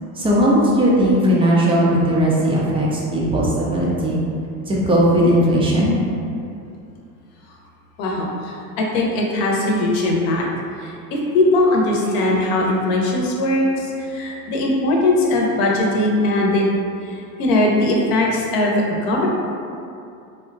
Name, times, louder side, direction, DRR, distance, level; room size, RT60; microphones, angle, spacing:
voice 1, 0.2-4.2 4.7-5.9, equal, 15° right, -5 dB, 0.3 m, -17 dB
voice 2, 8.0-10.5 10.8-16.6 17.0-19.3, left 1 dB, 60° left, -1 dB, 0.8 m, -20 dB
3.6 x 2.1 x 2.5 m, 2.5 s
hypercardioid pair, 90°, 48 cm